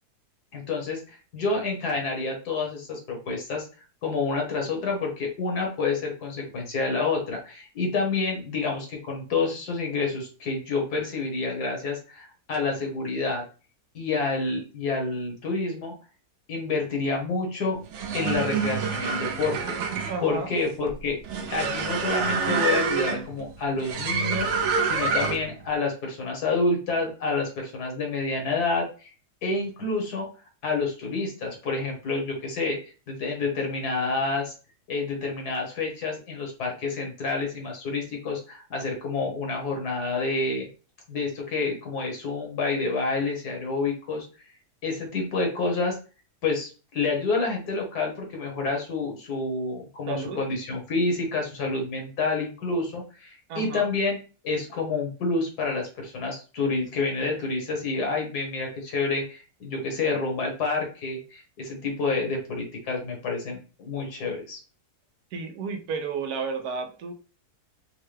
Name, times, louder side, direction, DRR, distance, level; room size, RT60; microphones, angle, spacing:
voice 1, 0.5-3.7 4.0-13.4 13.9-15.9 16.5-17.8 18.1-21.2 21.5-29.1 29.4-30.3 30.6-34.5 34.9-40.7 41.1-44.3 44.8-46.0 46.4-54.2 54.4-64.6, left 3 dB, 75° left, 1 dB, 1.8 m, -28 dB
sound 1, 17.8-25.6, right 5 dB, 65° right, 0.7 m, -27 dB
voice 2, 20.1-20.5 50.1-50.4 53.5-53.9 65.3-67.1, right 5 dB, 80° right, 6 dB, 1.2 m, -32 dB
4.6 x 2.2 x 3.2 m, 0.35 s
omnidirectional pair, 1.7 m